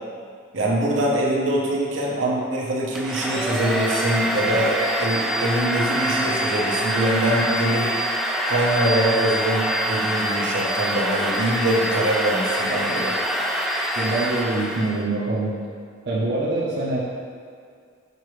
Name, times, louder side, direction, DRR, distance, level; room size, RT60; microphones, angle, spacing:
voice 1, 0.5-7.9 8.5-13.2, right 1 dB, 85° right, -4 dB, 1.0 m, -23 dB
Domestic sounds home sounds, 3.0-15.1, equal, ahead, 0.3 m, -25 dB
voice 2, 14.0-15.5 16.0-17.0, right 2 dB, 60° right, -6 dB, 0.8 m, -24 dB
6.7 x 4.8 x 3.2 m, 2.2 s
head